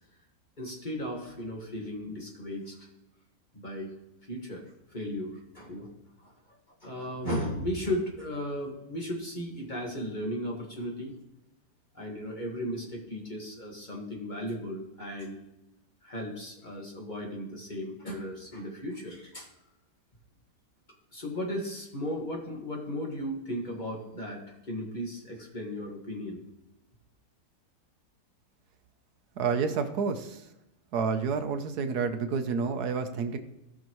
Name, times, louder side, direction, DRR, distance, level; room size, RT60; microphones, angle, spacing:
voice 1, 0.6-2.9 3.5-3.9 4.3-5.9 6.2-11.1 11.9-15.4 16.0-19.5 21.1-26.4, equal, 30° left, -1 dB, 1.8 m, -36 dB
voice 2, 29.4-30.5 30.9-33.4, right 5 dB, 75° right, 8 dB, 1.3 m, -29 dB
16.5 x 5.8 x 3.1 m, 0.91 s
omnidirectional pair, 1.7 m